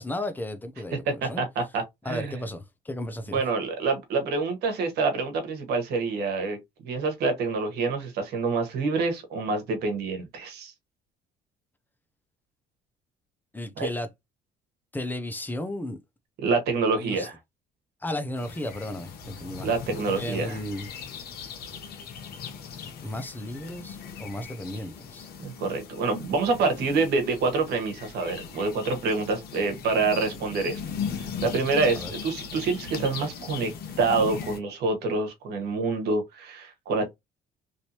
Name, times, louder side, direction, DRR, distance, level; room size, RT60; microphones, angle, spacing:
voice 1, 0.0-1.4 2.0-3.4 13.5-14.1 14.9-16.0 17.0-17.3 18.0-19.7 20.1-20.9 23.0-25.3 31.9-32.1, left 1 dB, 10° left, 0.6 m, -34 dB
voice 2, 1.1-2.4 3.3-6.6 6.8-10.7 13.8-13.9 16.4-17.4 19.6-20.6 25.4-30.8 31.1-33.7 34.0-37.1, right 4 dB, 75° right, 1.3 m, -27 dB
sound 1, 18.4-34.6, left 6 dB, 65° left, 1.0 m, -39 dB
3.1 x 2.7 x 2.9 m
cardioid pair, 110°, 17 cm